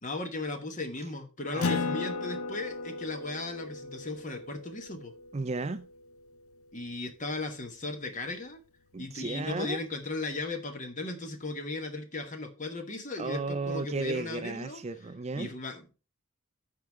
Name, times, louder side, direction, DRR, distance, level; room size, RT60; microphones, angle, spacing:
voice 1, 0.0-5.1 6.7-8.6 9.0-14.8 15.3-15.9, left 2 dB, 35° left, 1.2 m, -36 dB
voice 2, 1.5-1.8 5.3-5.9 8.9-9.8 13.2-15.5, right 3 dB, 30° right, 0.4 m, -34 dB
Acoustic guitar, 1.6-6.6, left 4 dB, 75° left, 0.5 m, -36 dB
13.0 x 4.7 x 3.5 m
head